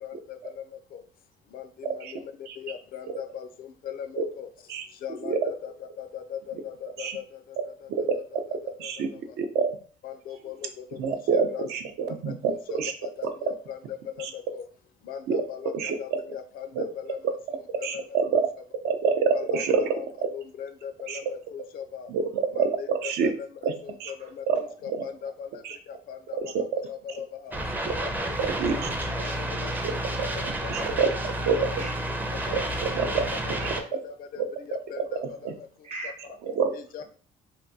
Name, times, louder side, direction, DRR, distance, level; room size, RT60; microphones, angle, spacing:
voice 1, 0.0-0.6 0.9-1.0 1.5-2.3 2.6-4.5 5.0-7.2 8.3-8.4 8.8-8.9 10.0-11.7 12.3-13.8 14.2-14.6 15.1-17.2 17.8-18.0 19.3-20.1 20.3-22.1 22.5-23.5 23.8-25.5 26.1-27.6 28.0-28.1 28.5-28.8 29.2-29.7 30.6-30.7 31.6-31.7 32.5-32.6 33.0-35.4 36.7-37.0, left 8 dB, 60° left, 9 dB, 0.4 m, -39 dB
voice 2, 7.9-8.4 8.8-9.1 9.4-9.7 11.0-12.9 14.2-14.3 15.3-15.4 15.7-16.0 16.7-16.8 17.8-18.4 18.8-19.8 21.1-21.2 22.1-22.8 23.0-23.3 23.6-23.7 24.0-24.1 24.5-24.6 24.9-25.0 25.6-25.8 26.4-26.6 27.9-28.0 28.4-28.9 29.8-29.9 30.7-31.1 31.5-31.7 32.5-33.2 33.5-33.7 35.4-35.5 36.6-36.7, right 6 dB, 70° right, 6 dB, 0.5 m, -26 dB
sound 1, 27.5-33.8, right 1 dB, 10° right, 0.4 m, -30 dB
voice 3, 31.8-32.2 35.8-36.6, right 2 dB, 45° right, 4 dB, 0.8 m, -41 dB
3.4 x 2.2 x 2.7 m, 0.42 s
cardioid pair, 110°, 17 cm